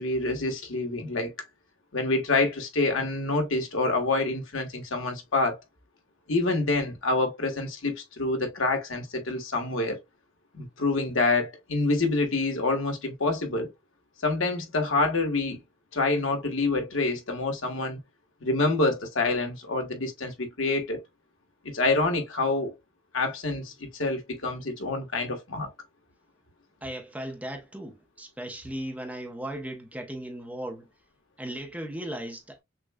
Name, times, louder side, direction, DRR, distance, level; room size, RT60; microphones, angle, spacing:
voice 1, 0.0-1.3 1.9-5.6 6.3-10.0 10.5-13.7 14.2-15.6 15.9-18.0 18.4-21.0 21.6-22.7 23.1-25.7, left 3 dB, 80° left, 1.3 m, -27 dB
voice 2, 26.8-30.9 31.4-32.6, right 1 dB, 5° right, 0.6 m, -37 dB
6.2 x 2.3 x 2.2 m
head